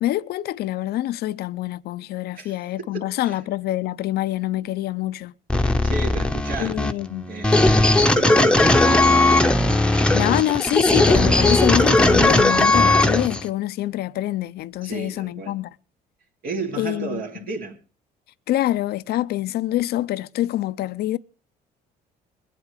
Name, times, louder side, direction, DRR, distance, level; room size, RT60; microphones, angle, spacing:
voice 1, 0.0-5.3 6.6-7.3 10.1-15.7 16.8-17.2 18.5-21.2, left 14 dB, 70° left, 0.6 m, -25 dB
voice 2, 2.3-3.4 5.8-6.8 7.3-9.3 14.8-15.6 16.4-17.8, right 3 dB, 60° right, 2.6 m, -32 dB
sound 1, 5.5-13.4, left 2 dB, 5° left, 1.0 m, -18 dB
21.5 x 8.4 x 4.9 m
cardioid pair, 110°, 17 cm